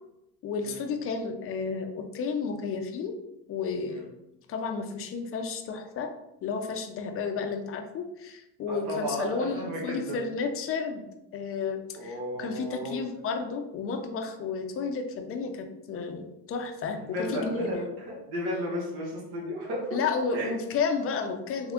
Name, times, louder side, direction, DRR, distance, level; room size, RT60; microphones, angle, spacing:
voice 1, 0.4-3.1 3.5-4.0 4.5-6.1 6.4-11.0 11.3-17.8 19.9-21.7, left 5 dB, 35° left, 5 dB, 0.5 m, -32 dB
voice 2, 8.7-10.2 11.9-13.0 17.0-20.0 20.3-20.5, equal, 65° right, -3 dB, 1.5 m, -34 dB
3.6 x 3.5 x 3.5 m, 0.88 s
cardioid pair, 145°, 42 cm